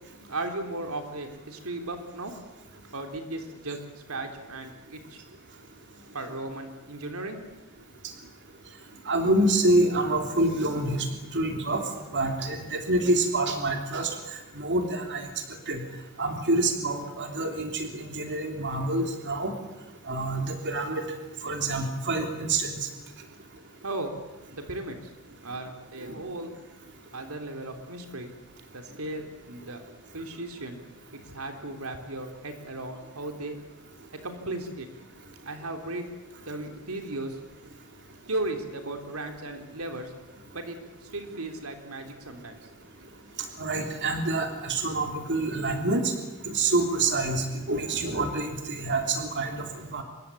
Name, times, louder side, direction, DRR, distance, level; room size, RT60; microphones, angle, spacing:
voice 1, 0.3-2.3 2.9-5.2 6.1-7.4 7.8-7.9 23.8-24.1 24.5-25.1 25.4-26.6 27.1-28.3 28.7-29.8 30.1-30.8 31.1-33.6 34.2-34.9 35.5-36.1 36.5-37.4 38.3-40.1 40.5-42.6 43.0-43.1, right 2 dB, 90° right, 5 dB, 3.5 m, -36 dB
voice 2, 9.0-11.1 11.3-11.8 12.1-14.1 14.6-15.3 15.7-15.8 16.2-19.5 20.1-21.1 21.4-22.9 26.1-26.2 43.6-46.1 46.4-50.0, right 2 dB, 55° right, 4 dB, 3.2 m, -27 dB
26.0 x 23.0 x 8.6 m, 1.1 s
head